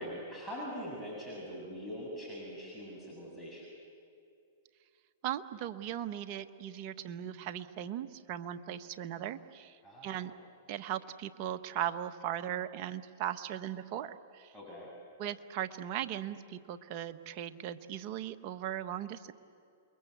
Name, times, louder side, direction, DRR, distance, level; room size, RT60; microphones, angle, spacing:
voice 1, 0.0-3.7 9.8-10.3 14.5-14.9, equal, 5° left, -5 dB, 7.8 m, -43 dB
voice 2, 5.2-10.3 10.7-14.5 15.2-19.3, right 11 dB, 45° right, 9 dB, 1.3 m, -38 dB
29.0 x 22.0 x 8.1 m, 2.4 s
hypercardioid pair, 115°, 0 cm